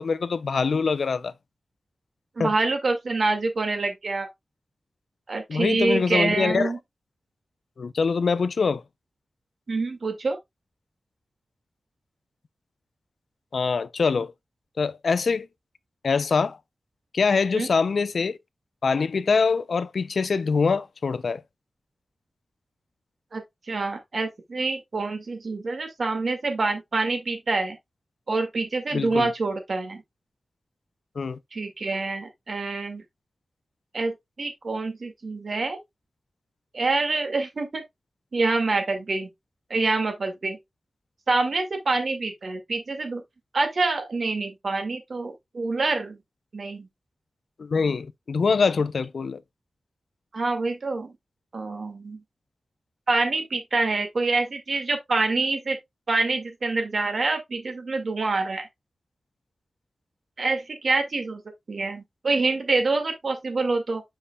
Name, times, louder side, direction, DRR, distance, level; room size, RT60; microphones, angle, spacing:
voice 1, 0.0-1.3 2.4-2.5 5.5-6.7 7.8-8.8 13.5-14.3 14.8-15.5 16.0-16.6 17.1-18.4 18.8-21.4 28.9-29.3 31.2-31.4 47.6-49.4, left 5 dB, 75° left, 0.5 m, -24 dB
voice 2, 2.4-4.3 5.3-6.8 9.7-10.4 17.5-17.7 23.3-27.8 28.3-30.0 31.5-33.0 33.9-35.8 36.7-37.8 38.3-39.3 39.7-40.6 41.3-43.2 43.5-46.2 46.5-46.9 50.3-51.1 51.5-52.2 53.1-55.8 56.1-58.7 60.4-61.4 61.7-64.0, right 3 dB, 65° right, 2.0 m, -26 dB
7.5 x 5.6 x 2.3 m
wide cardioid pair, 70°, 0 cm